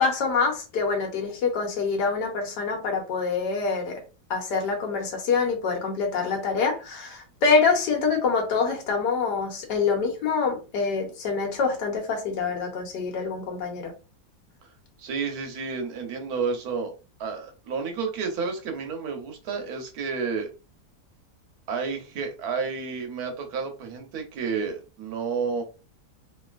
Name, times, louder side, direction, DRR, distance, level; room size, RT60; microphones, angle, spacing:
voice 1, 0.0-4.0 4.3-13.9, left 4 dB, 80° left, 1.5 m, -25 dB
voice 2, 15.0-16.9 17.2-20.5 21.7-25.6, right 5 dB, 70° right, 1.2 m, -30 dB
3.1 x 2.8 x 2.4 m
omnidirectional pair, 1.8 m